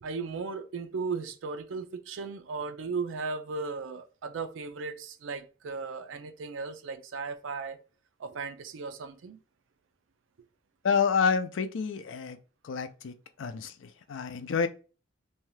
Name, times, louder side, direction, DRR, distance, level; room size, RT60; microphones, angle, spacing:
voice 1, 0.0-7.8 8.2-9.4, right 4 dB, 80° right, 0.4 m, -36 dB
voice 2, 10.8-12.4 12.6-14.7, left 6 dB, 80° left, 0.4 m, -29 dB
2.7 x 2.2 x 3.1 m
head